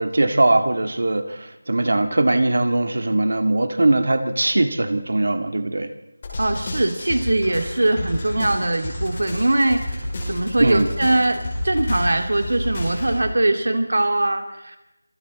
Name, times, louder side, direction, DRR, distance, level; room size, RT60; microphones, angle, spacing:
voice 1, 0.0-5.9 10.6-10.9, right 2 dB, 55° right, 8 dB, 2.0 m, -20 dB
sound 1, 6.2-13.2, left 1 dB, 20° left, 6.2 m, -30 dB
voice 2, 6.4-14.8, right 2 dB, 75° right, 6 dB, 2.5 m, -21 dB
27.0 x 23.5 x 4.3 m, 0.97 s
figure-of-eight pair, 180°, 0 cm